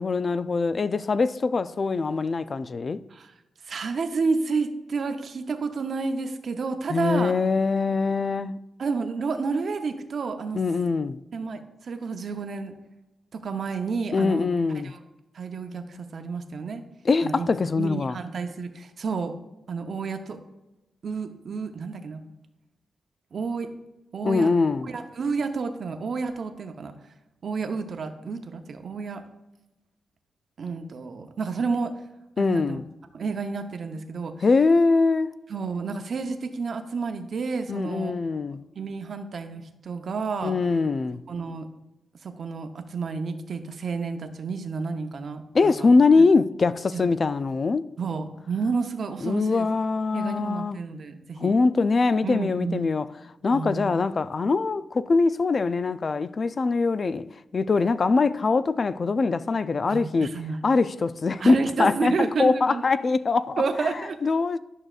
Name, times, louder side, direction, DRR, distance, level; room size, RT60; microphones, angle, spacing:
voice 1, 0.0-3.0 6.9-8.6 10.5-11.2 14.1-14.9 17.0-18.2 24.2-24.9 32.4-32.9 34.4-35.3 37.7-38.6 40.4-41.2 45.5-47.9 49.2-50.8 51.4-53.1 53.4-57.2 57.5-60.3 60.6-63.6 64.2-64.6, left 4 dB, 40° left, 0.3 m, -23 dB
voice 2, 3.6-7.3 8.8-10.6 11.3-12.7 13.3-14.5 14.8-15.0 15.3-16.8 17.2-17.5 17.8-19.4 19.7-20.4 21.0-22.2 23.3-23.7 24.1-24.5 24.8-26.9 27.4-29.2 30.6-31.9 32.4-32.8 33.1-34.3 35.5-38.2 38.5-40.6 41.3-41.7 42.2-45.9 46.9-47.0 48.0-49.7 50.1-51.6 52.2-52.9 53.5-53.9 59.9-60.6 61.4-62.8 63.6-64.2, right 4 dB, 55° right, 0.8 m, -30 dB
11.0 x 6.3 x 2.4 m
wide cardioid pair, 115°, 0 cm